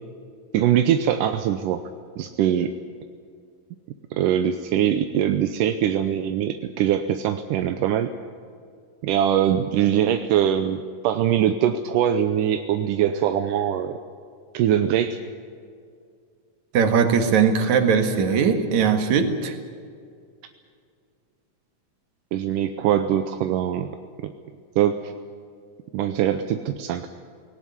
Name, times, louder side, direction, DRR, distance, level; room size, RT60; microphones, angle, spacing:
voice 1, 0.5-1.8 2.2-2.7 4.1-8.1 9.0-14.0 14.5-15.2 22.3-24.0 24.2-24.3 24.8-25.1 25.9-27.1, right 10 dB, 80° right, 8 dB, 2.4 m, -22 dB
voice 2, 16.7-19.6, right 6 dB, 60° right, 7 dB, 3.0 m, -20 dB
19.0 x 18.0 x 9.7 m, 2.2 s
omnidirectional pair, 3.8 m